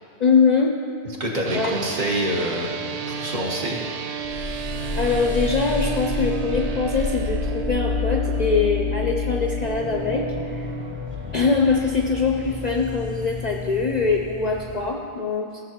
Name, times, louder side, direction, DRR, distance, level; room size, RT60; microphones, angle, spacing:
voice 1, 0.2-0.8 1.5-1.8 5.0-10.3 10.6-10.7 11.3-15.6, left 4 dB, 50° left, 1 dB, 0.5 m, -22 dB
voice 2, 1.2-2.7 3.1-3.8, right 1 dB, 45° right, -2 dB, 1.2 m, -26 dB
sound 1, 1.4-10.9, right 7 dB, 65° right, 0.4 m, -32 dB
sound 2, 4.2-14.9, left 5 dB, 10° right, 0.8 m, -30 dB
15.0 x 6.6 x 2.9 m, 2.3 s
omnidirectional pair, 1.2 m